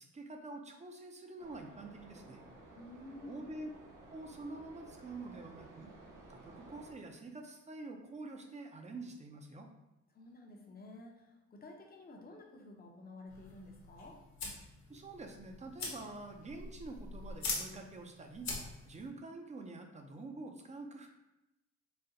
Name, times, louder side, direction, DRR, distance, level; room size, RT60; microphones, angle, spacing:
voice 1, 0.0-2.4 3.2-3.7 4.1-5.9 6.3-9.7 14.9-18.5 18.8-21.1, right 2 dB, 25° right, 3 dB, 0.6 m, -47 dB
sound 1, 1.4-6.9, right 2 dB, 90° right, 1.0 m, -55 dB
voice 2, 2.8-3.5 10.1-14.2, left 2 dB, 30° left, 1 dB, 0.8 m, -52 dB
sound 2, 13.3-19.0, left 3 dB, 65° left, 1.1 m, -43 dB
4.2 x 2.2 x 3.8 m, 0.93 s
cardioid pair, 90°, 30 cm